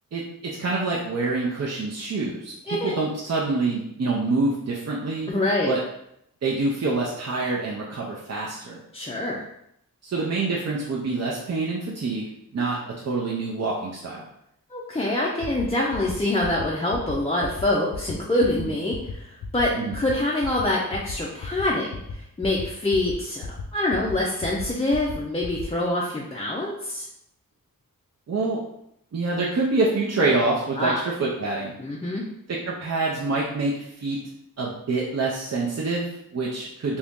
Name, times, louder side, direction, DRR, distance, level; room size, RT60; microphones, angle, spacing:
voice 1, 0.1-5.3 5.7-5.8 6.4-8.8 10.0-12.3 12.5-12.8 13.0-14.2 18.6-18.8 19.7-19.9 28.3-28.6 29.1-31.7 32.5-34.2 34.6-37.0, right 3 dB, 50° right, -4 dB, 0.6 m, -26 dB
voice 2, 5.3-5.7 8.9-9.4 14.7-23.5 23.7-27.1 30.8-31.0 31.8-32.2, left 1 dB, 15° left, -5 dB, 0.4 m, -25 dB
sound 1, 15.4-15.6 15.9-16.1 16.4-16.6 16.9-17.1 17.4-17.6 17.9-18.1 18.4-18.6 18.9-19.1 19.4-19.6 19.9-20.1 20.4-20.6 20.9-21.1 21.4-21.6 21.9-22.1 22.4-22.6 22.9-23.1 23.4-23.6 23.9-24.1 24.4-24.6 24.9-25.1 25.4-25.6, left 6 dB, 75° left, 0.6 m, -35 dB
2.9 x 2.6 x 3.5 m, 0.76 s
wide cardioid pair, 95°, 34 cm